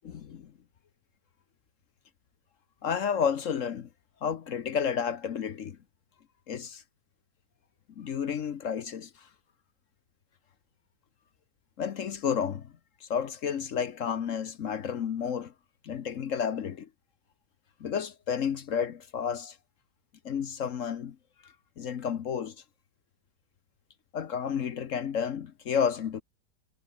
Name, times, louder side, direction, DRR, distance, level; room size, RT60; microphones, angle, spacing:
voice 1, 0.0-0.5 2.8-3.9 4.2-5.8 6.5-6.8 8.0-9.3 11.8-12.7 13.0-15.5 15.8-16.9 17.8-19.6 20.2-21.2 21.4-22.5 24.1-26.2, left 7 dB, 55° left, 1.2 m, -31 dB
omnidirectional pair, 1.8 m